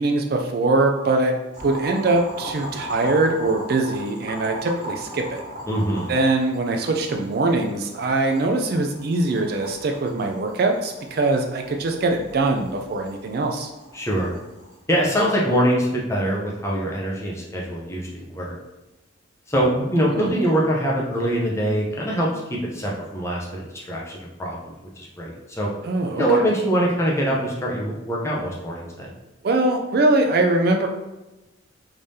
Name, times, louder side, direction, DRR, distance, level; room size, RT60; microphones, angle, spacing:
voice 1, 0.0-1.3 1.6-5.4 6.1-13.7 20.1-20.4 25.8-26.2 29.4-30.9, right 2 dB, 50° right, 3 dB, 0.3 m, -22 dB
Boiling, 1.5-14.8, equal, 35° right, 1.1 m, -38 dB
voice 2, 5.7-6.1 13.9-14.3 14.9-18.6 19.5-25.7 26.2-29.1, equal, 15° left, -3 dB, 0.6 m, -23 dB
3.6 x 3.3 x 2.7 m, 1.0 s
head